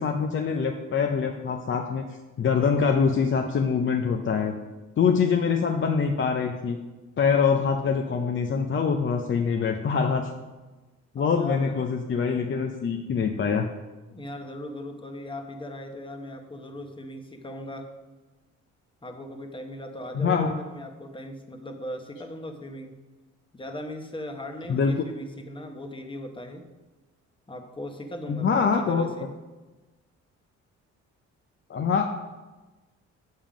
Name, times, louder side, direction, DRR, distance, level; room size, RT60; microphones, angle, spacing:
voice 1, 0.0-2.0 2.4-4.5 5.0-6.8 7.2-10.3 11.1-13.7 20.1-20.5 24.7-24.9 28.3-29.1 31.7-32.0, left 6 dB, 40° left, 3 dB, 0.6 m, -24 dB
voice 2, 11.2-11.8 14.1-17.9 19.0-23.0 23.5-26.6 27.5-29.3, left 1 dB, 15° left, 5 dB, 1.1 m, -38 dB
7.4 x 5.6 x 5.1 m, 1.2 s
cardioid pair, 90°, 30 cm